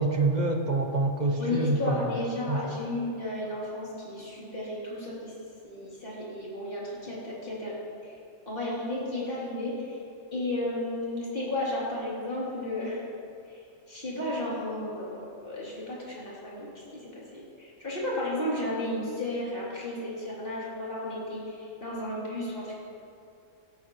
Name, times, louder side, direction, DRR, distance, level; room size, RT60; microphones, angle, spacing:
voice 1, 0.0-2.2 2.5-2.6, right 2 dB, 35° right, 3 dB, 1.1 m, -26 dB
voice 2, 1.4-5.3 5.6-7.7 8.0-8.2 8.5-10.0 10.3-13.0 13.5-22.8, left 1 dB, 40° left, -8 dB, 3.9 m, -33 dB
18.5 x 13.5 x 3.3 m, 2.6 s
omnidirectional pair, 1.4 m